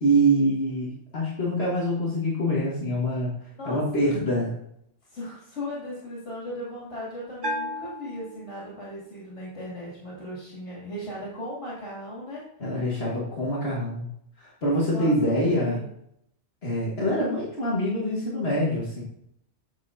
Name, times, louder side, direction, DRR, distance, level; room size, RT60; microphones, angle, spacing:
voice 1, 0.0-3.3 3.7-4.5 12.6-14.1 14.4-15.8 16.6-19.0, right 1 dB, 60° left, -5 dB, 2.0 m, -25 dB
voice 2, 3.6-4.2 5.1-12.4 14.8-15.8, left 1 dB, 90° left, -7 dB, 3.0 m, -37 dB
Bell, 7.4-9.1, left 1 dB, 50° right, 1.0 m, -34 dB
9.2 x 6.9 x 2.7 m, 0.73 s
omnidirectional pair, 1.2 m